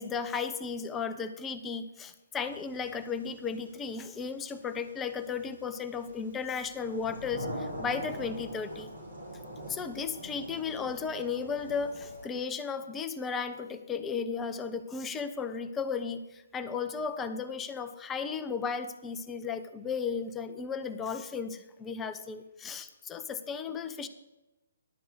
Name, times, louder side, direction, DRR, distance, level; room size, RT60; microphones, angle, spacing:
voice 1, 0.0-8.9 9.7-24.1, left 5 dB, 15° left, 10 dB, 0.5 m, -35 dB
sound 1, 2.4-12.3, equal, 75° right, 3.5 m, -43 dB
10.5 x 4.6 x 8.1 m, 1.0 s
figure-of-eight pair, 130°, 0 cm